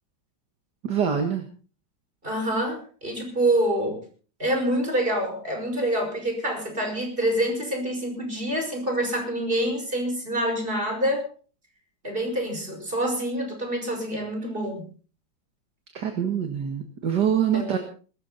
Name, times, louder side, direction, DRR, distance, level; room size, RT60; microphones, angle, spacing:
voice 1, 0.8-1.5 15.9-17.8, right 8 dB, 55° right, 5 dB, 2.3 m, -25 dB
voice 2, 2.2-4.0 4.4-11.3 12.0-14.9 17.5-17.8, right 1 dB, 25° right, 3 dB, 5.8 m, -26 dB
21.5 x 14.0 x 4.1 m, 0.40 s
omnidirectional pair, 2.2 m